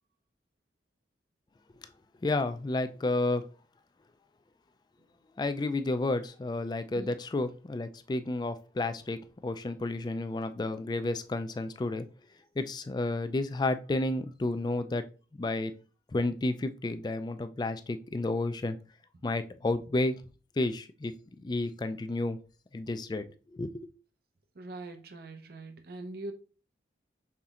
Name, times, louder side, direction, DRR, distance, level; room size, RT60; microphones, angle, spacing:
voice 1, 2.2-3.4 5.4-12.1 12.6-15.0 15.4-15.7 16.1-18.8 19.2-20.2 20.6-22.4 22.7-23.9, left 2 dB, 25° left, 0.3 m, -31 dB
voice 2, 24.6-26.3, right 2 dB, 55° right, 0.6 m, -42 dB
5.7 x 3.9 x 2.4 m
head